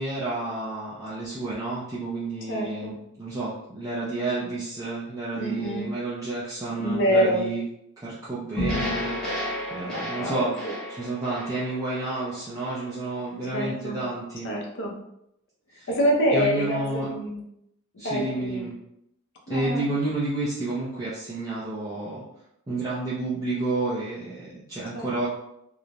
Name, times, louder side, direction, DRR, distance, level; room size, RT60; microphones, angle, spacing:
voice 1, 0.0-7.6 8.0-14.5 15.7-16.0 16.3-17.1 18.0-18.8 19.5-22.2 22.7-25.3, right 2 dB, 15° right, -9 dB, 0.4 m, -30 dB
voice 2, 2.5-3.0 5.3-5.9 6.8-7.4 9.8-10.7 13.5-14.0 14.4-14.9 15.9-17.4 18.0-18.7 19.5-19.9 24.9-25.3, equal, 55° left, -1 dB, 0.6 m, -26 dB
sound 1, 8.6-12.9, equal, ahead, 0.9 m, -32 dB
3.0 x 2.1 x 2.4 m, 0.80 s
head